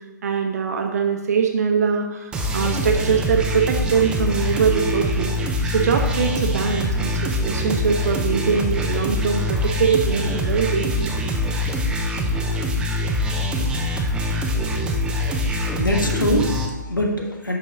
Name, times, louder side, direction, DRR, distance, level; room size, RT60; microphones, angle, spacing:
voice 1, 0.2-5.4 5.7-11.0, right 6 dB, 50° right, 4 dB, 0.9 m, -22 dB
sound 1, 2.3-16.7, left 1 dB, 10° right, 0.5 m, -24 dB
voice 2, 15.7-17.6, left 1 dB, 80° left, 1 dB, 1.3 m, -23 dB
7.4 x 5.4 x 2.8 m, 1.2 s
figure-of-eight pair, 125°, 11 cm